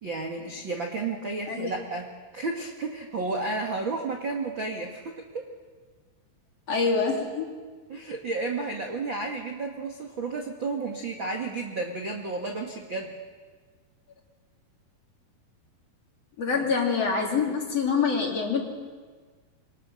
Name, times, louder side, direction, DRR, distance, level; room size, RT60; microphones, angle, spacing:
voice 1, 0.0-5.5 7.9-13.2 16.5-16.6, right 3 dB, 40° right, 2 dB, 1.8 m, -32 dB
voice 2, 6.7-7.5 16.4-18.6, left 5 dB, 40° left, -1 dB, 4.0 m, -25 dB
27.0 x 25.0 x 6.5 m, 1.5 s
omnidirectional pair, 4.8 m